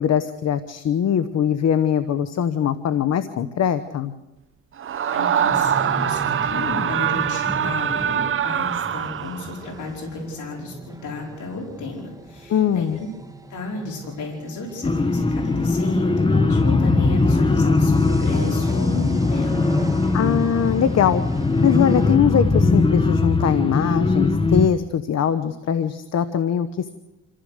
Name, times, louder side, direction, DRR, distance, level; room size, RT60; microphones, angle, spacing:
voice 1, 0.0-4.1 12.5-13.0 20.1-21.2 21.6-26.9, left 8 dB, 60° left, 12 dB, 1.1 m, -21 dB
Screaming, 4.8-9.6, right 9 dB, 45° right, 0.7 m, -23 dB
voice 2, 5.1-13.1 13.5-19.8, left 3 dB, 75° left, -1 dB, 5.0 m, -33 dB
sound 1, 5.5-22.2, right 2 dB, 10° right, 1.8 m, -38 dB
sound 2, 14.8-24.7, left 3 dB, 15° left, 1.1 m, -20 dB
27.0 x 15.0 x 6.6 m, 0.99 s
cardioid pair, 90°, 30 cm